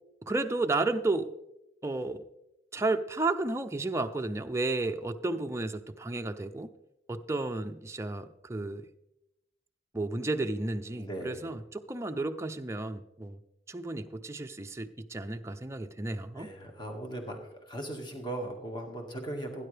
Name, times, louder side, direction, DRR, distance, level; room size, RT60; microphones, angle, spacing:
voice 1, 0.2-1.3 1.8-2.3 2.7-6.7 7.1-8.9 9.9-13.4 13.7-16.5, right 2 dB, 15° right, 6 dB, 0.5 m, -32 dB
voice 2, 10.9-11.5 16.3-17.4 17.7-19.7, right 1 dB, 25° left, 2 dB, 1.8 m, -38 dB
17.0 x 10.0 x 3.4 m, 0.87 s
head